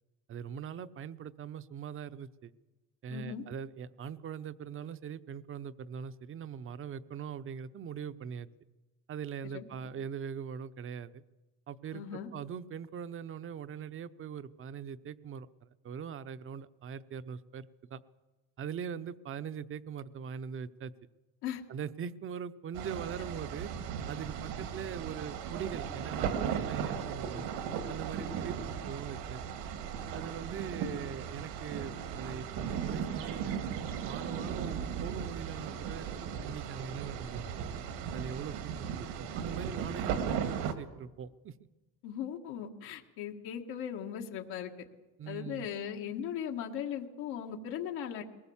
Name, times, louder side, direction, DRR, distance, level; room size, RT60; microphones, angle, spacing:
voice 1, 0.3-2.5 3.0-8.5 9.1-11.2 11.7-18.0 18.6-20.9 21.7-23.7 24.1-27.6 27.9-28.6 28.8-29.4 30.1-33.6 34.0-36.1 36.5-37.7 38.1-41.5 45.2-45.7, right 7 dB, 35° right, 13 dB, 0.7 m, -41 dB
voice 2, 3.1-3.4 9.5-9.7 11.9-12.3 21.4-21.6 42.0-44.7 45.3-48.2, left 9 dB, 80° left, 1 dB, 1.8 m, -38 dB
sound 1, 22.7-40.7, right 7 dB, 80° right, 2.1 m, -37 dB
21.5 x 19.5 x 7.2 m, 1.2 s
cardioid pair, 140°, 38 cm